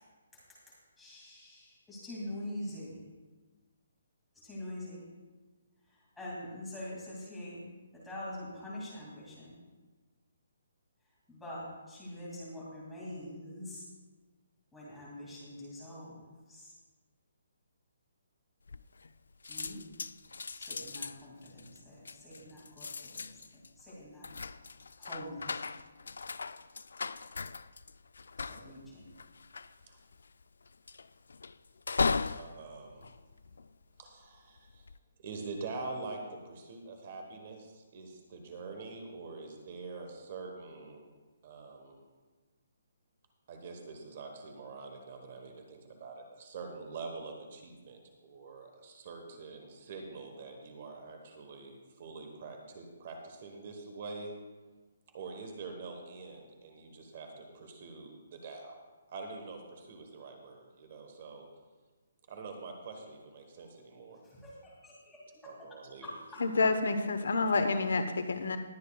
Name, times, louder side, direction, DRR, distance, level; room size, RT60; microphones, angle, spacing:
voice 1, 0.7-3.0 4.3-5.0 5.9-7.6 7.9-9.6 11.3-13.9 14.7-16.8 19.5-19.8 20.5-23.3 23.8-24.3 25.0-25.7 28.5-29.1 64.2-65.2 66.0-66.4, left 1 dB, 5° left, -8 dB, 2.4 m, -44 dB
sound 1, 18.7-19.2 19.4-34.0 34.6-35.0, left 4 dB, 90° left, 0.3 m, -38 dB
voice 2, 32.4-33.2 34.0-34.9 35.2-41.1 41.4-42.1 43.5-54.3 55.1-58.8 59.1-61.5 62.3-64.2 65.4-66.1, right 3 dB, 30° right, 3 dB, 1.2 m, -45 dB
voice 3, 66.4-68.6, left 3 dB, 70° left, 9 dB, 0.9 m, -28 dB
20.5 x 9.2 x 2.3 m, 1.3 s
hypercardioid pair, 180°, 0 cm